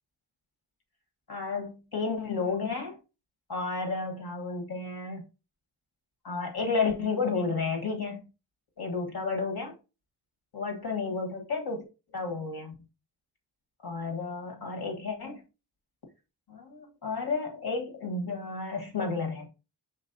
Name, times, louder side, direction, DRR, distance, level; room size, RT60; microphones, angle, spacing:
voice 1, 1.3-3.0 3.5-5.2 6.2-8.3 8.8-9.7 10.5-11.8 12.1-12.7 13.8-15.4 16.5-19.5, left 4 dB, 55° left, 1.6 m, -32 dB
6.2 x 3.1 x 2.7 m
supercardioid pair, 40°, 46 cm